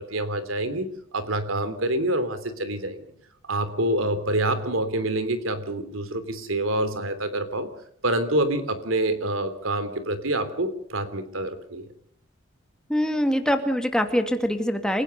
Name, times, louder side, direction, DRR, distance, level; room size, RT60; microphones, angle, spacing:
voice 1, 0.0-3.1 3.5-7.7 8.0-11.8, right 1 dB, 85° right, 12 dB, 3.3 m, -27 dB
voice 2, 12.9-15.0, equal, 5° left, 6 dB, 2.4 m, -24 dB
28.5 x 16.0 x 6.8 m, 0.68 s
head